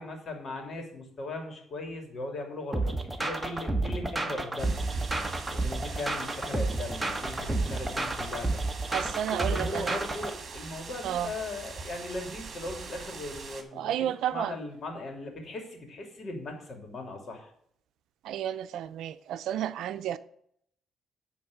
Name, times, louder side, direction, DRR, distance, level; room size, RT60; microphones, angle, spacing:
voice 1, 0.0-4.8 5.5-8.6 9.0-13.9 14.3-17.5, left 2 dB, 50° left, 2.8 m, -38 dB
sound 1, 2.7-10.3, right 2 dB, 15° right, 1.2 m, -31 dB
sound 2, 4.6-13.6, right 4 dB, 45° right, 1.8 m, -41 dB
voice 2, 8.9-10.0 11.0-11.3 13.7-14.6 18.2-20.2, right 10 dB, 80° right, 0.5 m, -32 dB
10.0 x 3.9 x 7.2 m
cardioid pair, 90°, 0 cm